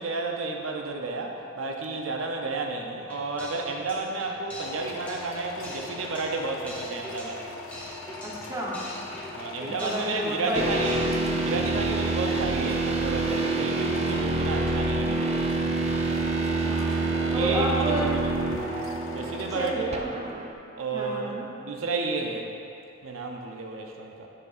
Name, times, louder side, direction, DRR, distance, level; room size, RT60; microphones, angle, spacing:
voice 1, 0.0-7.6 9.3-15.5 17.0-18.0 19.0-20.0 20.8-21.4 21.6-22.5 23.0-24.3, right 3 dB, 85° right, 2 dB, 0.6 m, -32 dB
sound 1, 3.0-10.5 10.7-11.2, left 1 dB, 5° left, 1.1 m, -43 dB
sound 2, 4.6-19.7, left 3 dB, 85° left, 0.5 m, -41 dB
voice 2, 8.2-8.8 9.6-11.1 16.4-17.0 17.3-18.1 19.5-20.4 20.9-21.5, right 1 dB, 15° right, -5 dB, 0.9 m, -31 dB
sound 3, 10.6-20.5, right 2 dB, 30° right, 0.4 m, -27 dB
7.6 x 6.8 x 2.5 m, 2.6 s
head